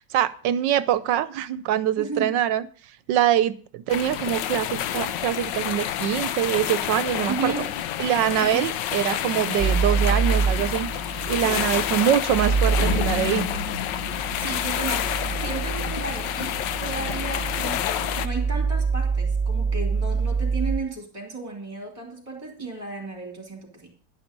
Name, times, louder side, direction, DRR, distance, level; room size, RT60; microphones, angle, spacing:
voice 1, 0.1-2.6 3.1-7.5 8.0-13.5, right 11 dB, 80° right, 15 dB, 1.4 m, -24 dB
voice 2, 2.0-2.3 7.3-7.7 8.3-8.6 11.4-11.7 14.2-15.1 15.4-16.5 16.8-23.9, right 3 dB, 15° right, 2 dB, 3.2 m, -34 dB
sound 1, 3.9-18.3, left 11 dB, 85° left, 1.4 m, -29 dB
sound 2, 9.6-20.8, right 5 dB, 40° right, 0.6 m, -26 dB
sound 3, 12.8-15.2, left 6 dB, 70° left, 1.9 m, -31 dB
11.0 x 10.5 x 5.3 m, 0.43 s
omnidirectional pair, 1.9 m